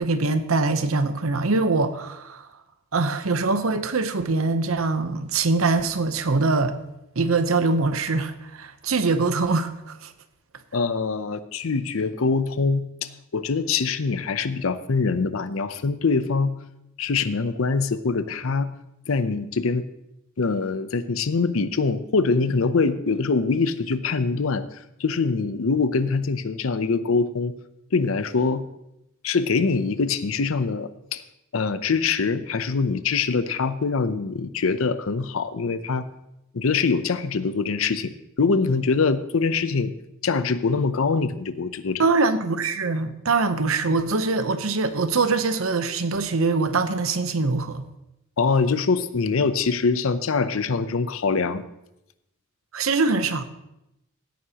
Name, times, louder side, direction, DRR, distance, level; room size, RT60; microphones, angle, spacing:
voice 1, 0.0-2.5 2.9-6.8 7.2-10.1 42.0-47.9 52.7-53.4, right 3 dB, 85° right, 0.8 m, -23 dB
voice 2, 10.7-16.5 17.0-18.7 19.1-19.8 20.4-27.5 27.9-28.6 29.2-31.2 31.5-36.1 36.5-38.1 38.4-39.9 40.2-42.0 48.4-51.6, left 4 dB, 75° left, 0.6 m, -24 dB
16.5 x 9.4 x 2.9 m
head